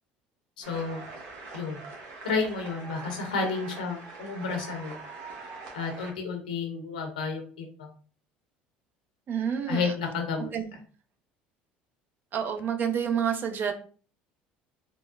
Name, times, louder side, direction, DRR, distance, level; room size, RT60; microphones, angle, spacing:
voice 1, 0.6-1.0 1.5-1.8 2.2-5.0 5.7-7.9 9.7-10.5, left 4 dB, 90° left, 3 dB, 0.7 m, -31 dB
sound 1, 0.6-6.1, right 3 dB, 65° right, 0.9 m, -43 dB
voice 2, 9.3-9.9 10.5-10.7 12.3-13.7, right 8 dB, 50° right, 6 dB, 0.6 m, -28 dB
3.7 x 2.0 x 2.4 m, 0.41 s
hypercardioid pair, 75°, 4 cm